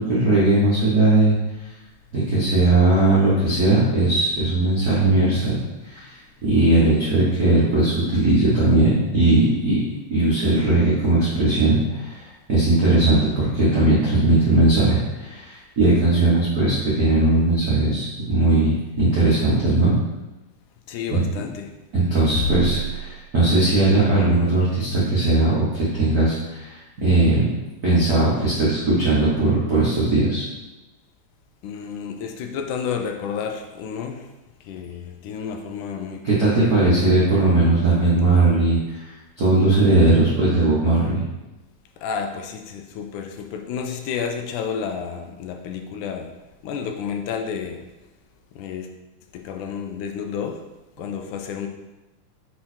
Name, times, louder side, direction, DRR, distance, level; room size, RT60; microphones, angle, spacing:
voice 1, 0.0-1.3 2.1-5.6 5.8-6.2 6.4-9.8 10.1-12.2 12.5-20.0 21.1-21.2 21.9-27.5 27.8-30.5 36.2-41.2, right 2 dB, 60° right, -8 dB, 0.9 m, -19 dB
voice 2, 20.9-21.8 31.6-34.3 34.6-37.0 37.8-38.3 42.0-46.3 46.6-47.9 48.5-48.9 49.3-50.6 51.0-51.7, left 6 dB, 80° left, 4 dB, 1.9 m, -31 dB
5.7 x 5.0 x 4.4 m, 1.1 s
omnidirectional pair, 3.9 m